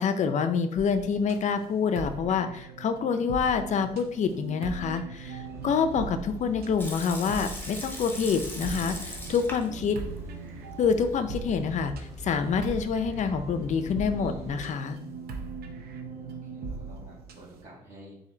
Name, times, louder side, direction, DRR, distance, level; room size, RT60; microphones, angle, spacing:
voice 1, 0.0-10.0 10.8-15.0, left 6 dB, 45° left, 9 dB, 0.5 m, -27 dB
sound 1, 0.8-17.6, right 4 dB, 65° right, 0.8 m, -40 dB
sound 2, 5.3-14.7, equal, 15° right, 1.2 m, -44 dB
Water tap faucet / Sink (filling or washing) / Liquid, 6.8-9.8 10.1-10.2 10.8-11.5, left 1 dB, 10° left, 0.9 m, -40 dB
voice 2, 15.8-18.2, equal, 40° right, -8 dB, 1.7 m, -51 dB
4.3 x 2.7 x 3.8 m, 0.72 s
cardioid pair, 110°, 17 cm